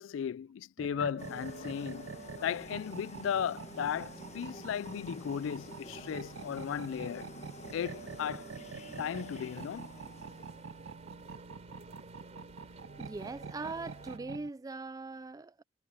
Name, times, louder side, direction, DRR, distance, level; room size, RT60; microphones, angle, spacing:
voice 1, 0.0-7.3 7.7-8.5 9.0-9.9, left 8 dB, 75° left, 0.3 m, -36 dB
sound 1, 0.8-14.5, right 5 dB, 80° right, 0.5 m, -46 dB
sound 2, 1.2-11.0, left 2 dB, 35° left, 1.3 m, -50 dB
sound 3, 1.4-14.2, right 2 dB, 35° right, 3.4 m, -56 dB
voice 2, 13.0-15.6, right 3 dB, 20° right, 0.3 m, -41 dB
head